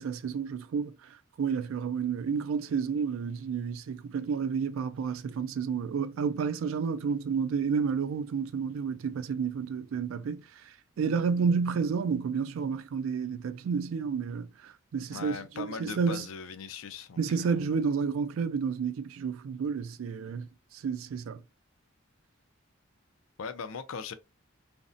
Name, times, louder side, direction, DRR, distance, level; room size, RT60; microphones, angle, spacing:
voice 1, 0.0-16.3 17.2-21.4, right 6 dB, 75° right, 0.3 m, -31 dB
voice 2, 15.1-17.6 23.4-24.1, left 5 dB, 80° left, 0.4 m, -40 dB
2.5 x 2.1 x 2.5 m
head